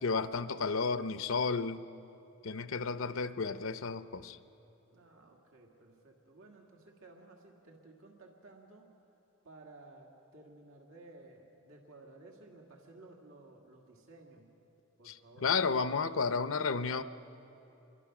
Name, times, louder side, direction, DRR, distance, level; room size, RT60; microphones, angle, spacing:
voice 1, 0.0-1.8 2.4-4.4 15.0-17.0, left 4 dB, 85° left, 12 dB, 0.7 m, -32 dB
voice 2, 4.9-9.0 9.4-14.5 15.0-15.5, right 2 dB, 90° right, 0 dB, 2.0 m, -56 dB
26.5 x 23.0 x 6.1 m, 2.9 s
head